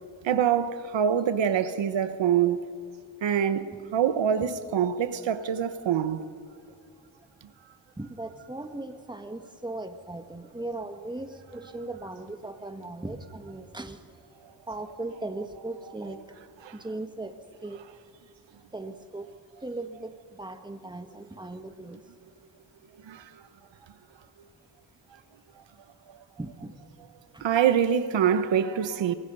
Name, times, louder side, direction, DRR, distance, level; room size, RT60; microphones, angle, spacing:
voice 1, 0.2-2.6 3.2-6.3 16.6-16.7 23.1-23.2 27.4-29.1, right 8 dB, 75° right, 1.2 m, -25 dB
voice 2, 8.0-14.0 14.7-16.2 16.7-17.3 17.6-17.8 18.7-19.3 19.6-22.0 26.4-26.8 27.3-27.5, right 2 dB, 10° right, 1.6 m, -38 dB
29.5 x 23.0 x 5.5 m
cardioid pair, 110°, 45 cm